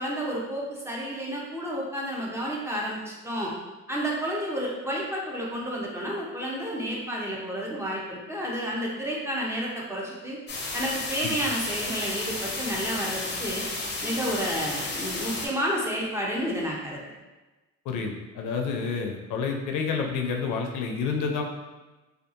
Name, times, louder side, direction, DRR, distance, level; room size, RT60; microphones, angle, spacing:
voice 1, 0.0-3.5 3.9-10.4 10.7-13.6 14.0-17.0, equal, 10° right, -4 dB, 0.6 m, -30 dB
sound 1, 10.5-15.5, left 2 dB, 35° left, 0.6 m, -32 dB
voice 2, 17.9-21.4, left 5 dB, 85° left, 3 dB, 0.5 m, -29 dB
2.6 x 2.3 x 2.5 m, 1.2 s
cardioid pair, 90°, 30 cm